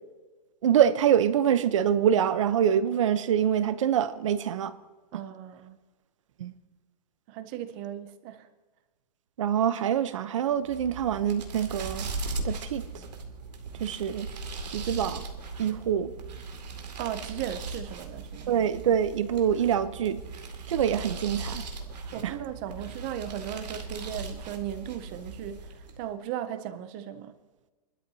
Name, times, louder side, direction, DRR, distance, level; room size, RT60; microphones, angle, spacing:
voice 1, 0.6-4.7 6.4-6.5 9.4-12.1 12.4-12.9 13.8-14.3 14.7-15.3 15.6-16.1 18.5-20.2 20.7-21.7 22.2-22.3, right 9 dB, 50° right, 0.8 m, -25 dB
voice 2, 5.1-5.8 7.3-8.5 17.0-18.5 22.1-27.3, right 10 dB, 15° right, 0.5 m, -37 dB
sound 1, 10.6-26.1, right 3 dB, 90° right, 2.4 m, -38 dB
27.5 x 12.5 x 2.8 m
hypercardioid pair, 175°, 21 cm